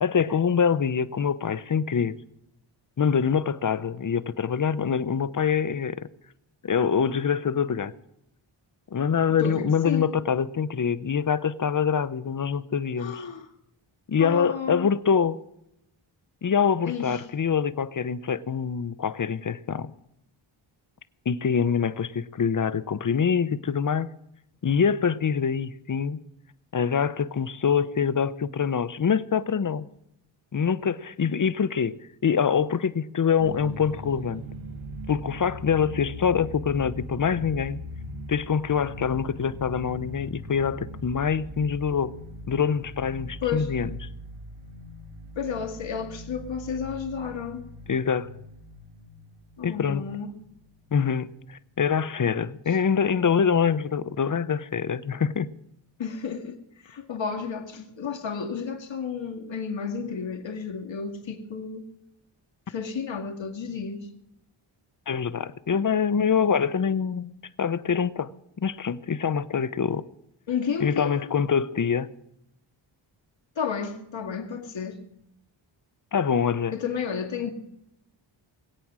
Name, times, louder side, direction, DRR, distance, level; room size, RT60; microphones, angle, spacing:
voice 1, 0.0-2.2 3.0-6.1 6.6-7.9 8.9-13.3 14.1-15.4 16.4-19.9 21.3-24.1 24.6-26.2 26.7-29.9 30.5-32.0 32.2-34.4 35.1-37.8 38.3-42.1 42.5-43.9 47.9-48.3 49.6-50.1 50.9-55.5 65.1-67.3 67.6-68.3 68.6-70.1 70.8-72.1 76.1-76.7, left 6 dB, 40° left, 0.8 m, -25 dB
voice 2, 9.4-10.0 13.0-13.5 14.2-14.9 16.8-17.2 43.4-43.7 45.4-47.7 49.6-50.4 56.0-56.6 56.8-61.8 62.7-64.1 70.5-71.2 73.6-75.0 76.7-77.5, left 6 dB, 65° left, 2.2 m, -32 dB
sound 1, 33.4-51.4, equal, 75° right, 1.7 m, -41 dB
20.5 x 8.6 x 6.2 m
cardioid pair, 70°, 49 cm